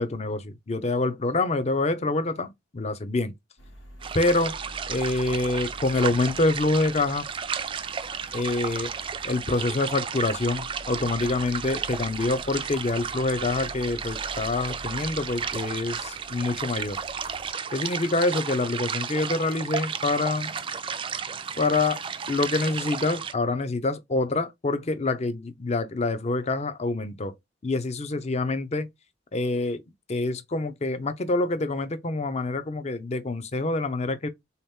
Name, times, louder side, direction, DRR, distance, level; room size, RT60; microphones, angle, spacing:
voice 1, 0.0-3.3 4.1-4.6 4.9-7.3 8.3-8.9 9.2-17.0 17.7-20.5 21.6-22.0 22.3-27.4 27.6-28.9 29.3-29.8 30.1-34.3, left 2 dB, 35° left, 0.5 m, -26 dB
sound 1, 3.6-17.5, equal, 85° left, 1.3 m, -46 dB
sound 2, 4.0-23.3, right 6 dB, 25° right, 0.3 m, -33 dB
3.5 x 2.9 x 3.5 m
head